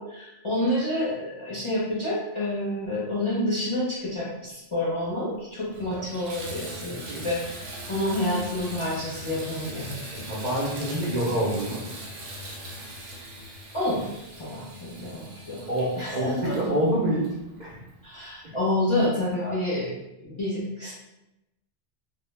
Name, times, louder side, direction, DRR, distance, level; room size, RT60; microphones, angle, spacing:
voice 1, 0.0-10.3 13.7-14.0 14.4-15.6 16.0-16.7 18.0-19.9 20.2-20.9, left 1 dB, 35° left, -8 dB, 0.5 m, -29 dB
Water tap faucet / Bathtub (filling or washing), 5.0-5.1 5.6-18.0 18.7-18.8 19.3-19.4, right 1 dB, 85° right, 0.9 m, -40 dB
voice 2, 10.2-11.9 15.7-17.3 17.6-17.8 19.4-19.6, right 1 dB, 55° right, -6 dB, 0.5 m, -27 dB
2.1 x 2.0 x 3.1 m, 0.93 s
omnidirectional pair, 1.2 m